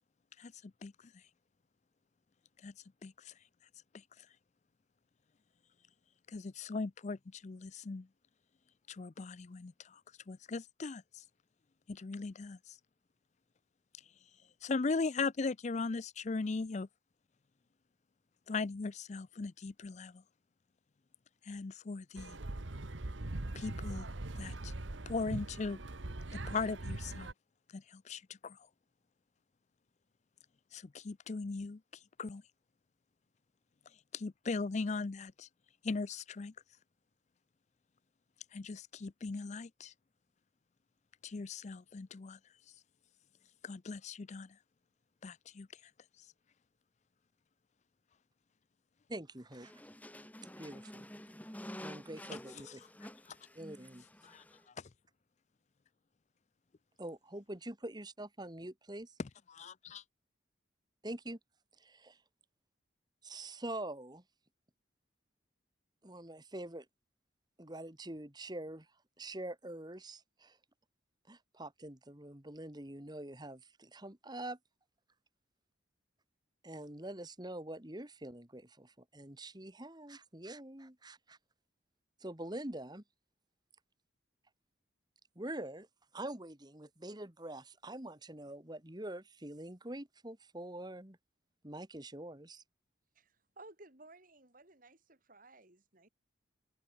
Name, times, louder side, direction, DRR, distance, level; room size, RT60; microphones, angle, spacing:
voice 1, 0.4-0.9 2.6-2.7 3.0-3.3 6.3-8.1 8.9-10.0 10.3-11.2 11.9-12.8 14.6-16.9 18.5-20.2 21.5-22.4 23.5-24.1 24.4-24.7 25.1-25.8 26.3-27.3 27.7-28.6 30.7-31.8 32.2-32.4 34.1-35.5 35.8-36.5 38.5-39.9 41.2-42.4 43.6-44.6 45.2-45.7 54.2-54.4 59.2-60.0, left 4 dB, 35° left, 0.4 m, -39 dB
sound 1, 22.2-27.3, right 2 dB, 75° right, 1.4 m, -41 dB
voice 2, 49.1-49.7 50.6-51.1 51.8-52.8 53.6-54.0 57.0-59.1 61.0-61.4 61.8-62.2 63.2-64.2 66.0-66.9 67.6-68.9 69.2-70.6 71.3-74.6 76.6-81.4 82.2-83.0 85.4-85.9 86.1-91.2 91.6-92.6, right 1 dB, 20° right, 2.1 m, -45 dB
sound 2, 49.5-54.6, left 1 dB, 10° left, 3.0 m, -50 dB
voice 3, 93.1-96.1, right 2 dB, 45° right, 3.8 m, -57 dB
open air
head